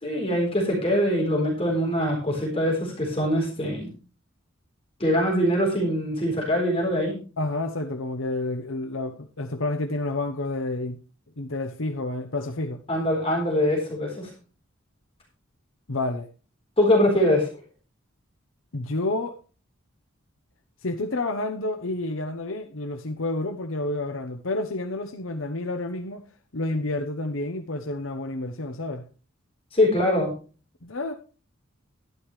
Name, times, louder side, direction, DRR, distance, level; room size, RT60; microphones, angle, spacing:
voice 1, 0.0-3.9 5.0-7.2 12.9-14.3 16.8-17.5 29.7-30.3, equal, 30° left, 4.1 m, -23 dB
voice 2, 7.4-11.0 11.4-12.8 15.9-16.3 18.7-19.4 20.8-26.2 26.5-29.0 30.8-31.1, left 2 dB, 70° left, 1.0 m, -29 dB
12.0 x 11.0 x 3.2 m
head